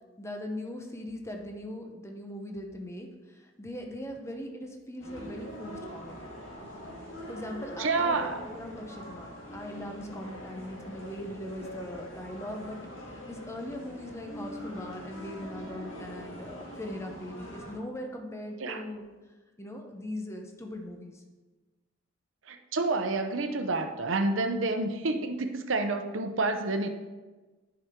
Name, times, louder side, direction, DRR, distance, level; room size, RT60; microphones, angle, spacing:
voice 1, 0.2-3.1 3.4-6.3 7.3-12.8 13.1-19.0 19.6-21.2, left 1 dB, 15° left, 2 dB, 0.9 m, -40 dB
sound 1, 5.0-17.8, equal, 90° left, 1.9 m, -43 dB
voice 2, 7.8-8.4 18.6-18.8 22.5-26.9, right 3 dB, 75° right, 7 dB, 0.7 m, -29 dB
9.7 x 5.9 x 3.7 m, 1.3 s
head